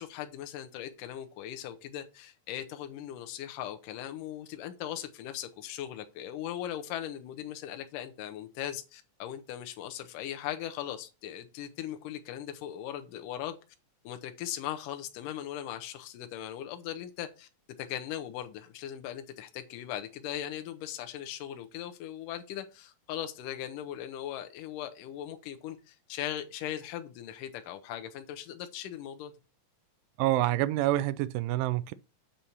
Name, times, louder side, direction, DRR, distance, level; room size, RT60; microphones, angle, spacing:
voice 1, 0.0-13.6 14.0-17.5 17.8-29.3, left 11 dB, 75° left, 2.3 m, -39 dB
voice 2, 30.2-31.9, right 15 dB, 85° right, 2.2 m, -27 dB
7.7 x 4.3 x 6.9 m
omnidirectional pair, 3.9 m